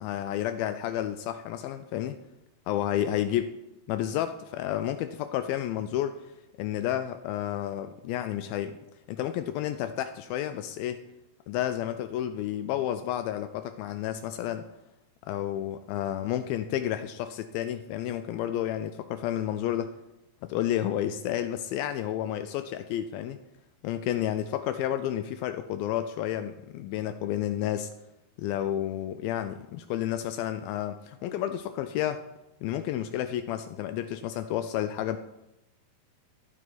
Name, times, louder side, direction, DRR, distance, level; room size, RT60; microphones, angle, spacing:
voice 1, 0.0-2.2 2.7-3.5 3.9-6.3 6.6-8.7 9.1-11.1 11.5-14.7 15.3-19.9 20.4-23.4 23.8-27.9 28.4-32.2 32.6-35.2, left 11 dB, 85° left, 9 dB, 2.1 m, -31 dB
14.0 x 9.1 x 4.0 m, 0.95 s
omnidirectional pair, 4.7 m